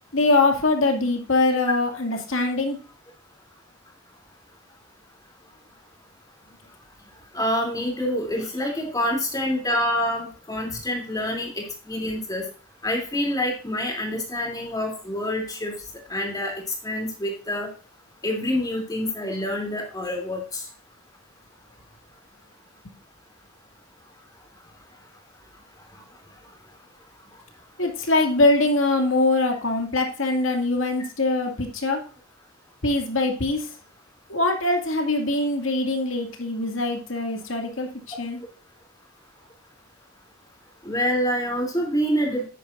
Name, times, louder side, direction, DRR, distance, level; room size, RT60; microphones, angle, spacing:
voice 1, 0.1-2.8 27.8-32.0 32.8-33.7 34.3-37.9 38.2-38.4, left 2 dB, 70° left, 3 dB, 2.4 m, -23 dB
voice 2, 7.3-12.4 12.8-15.7 16.1-16.5 16.8-17.7 18.2-20.6 40.8-42.5, equal, 20° left, 0 dB, 3.1 m, -26 dB
10.0 x 9.9 x 2.6 m, 0.37 s
head